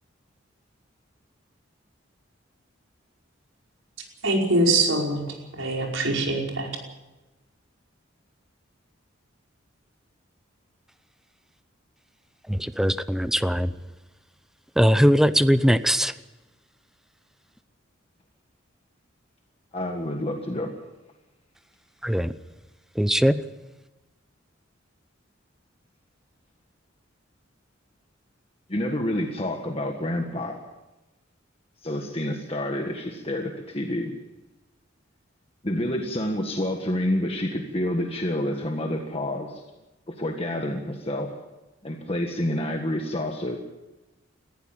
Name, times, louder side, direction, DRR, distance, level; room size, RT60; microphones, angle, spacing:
voice 1, 4.2-5.2 5.5-6.7, right 2 dB, 80° right, 0 dB, 5.2 m, -23 dB
voice 2, 12.5-13.7 14.8-16.1 22.0-22.3 22.9-23.4, equal, ahead, 14 dB, 0.6 m, -20 dB
voice 3, 19.7-20.7 28.7-30.6 31.8-34.1 35.6-39.6 40.1-41.3 41.8-43.6, left 1 dB, 30° left, 3 dB, 1.6 m, -28 dB
20.5 x 15.0 x 8.8 m, 1.1 s
head